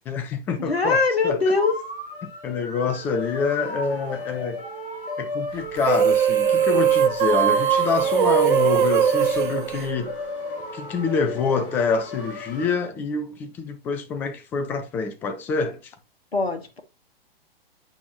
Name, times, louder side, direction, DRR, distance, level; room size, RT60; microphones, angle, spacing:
voice 1, 0.1-1.5 2.2-4.6 5.2-10.1 10.7-15.9, left 5 dB, 5° left, 0.3 m, -26 dB
voice 2, 0.6-1.9 16.3-16.8, left 4 dB, 80° left, 1.4 m, -22 dB
sound 1, 1.6-12.8, left 3 dB, 60° left, 3.0 m, -34 dB
sound 2, 5.8-10.5, right 9 dB, 55° right, 0.6 m, -20 dB
8.2 x 5.1 x 3.0 m
figure-of-eight pair, 115°, 30 cm